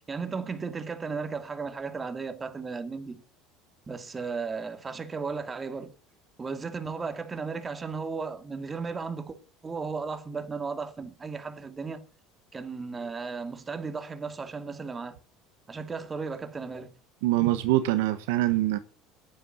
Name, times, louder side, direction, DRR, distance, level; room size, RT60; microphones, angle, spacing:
voice 1, 0.1-3.2 3.9-5.9 6.4-9.4 9.6-12.0 12.5-15.2 15.7-16.9, right 4 dB, 25° right, 2.3 m, -35 dB
voice 2, 17.2-18.8, right 16 dB, 75° right, 1.1 m, -24 dB
10.5 x 9.7 x 6.9 m
hypercardioid pair, 80°, 0 cm